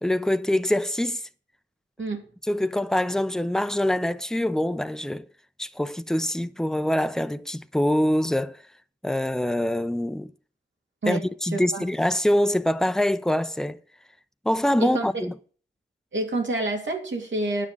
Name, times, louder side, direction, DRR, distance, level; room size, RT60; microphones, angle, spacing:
voice 1, 0.0-1.2 2.5-5.3 5.6-8.6 9.0-10.3 11.1-13.8 14.4-15.3, left 1 dB, 5° left, 0.5 m, -24 dB
voice 2, 11.5-11.8 14.8-15.1 16.1-17.7, right 2 dB, 80° right, 2.8 m, -28 dB
9.7 x 7.0 x 6.1 m
wide cardioid pair, 95°, 19 cm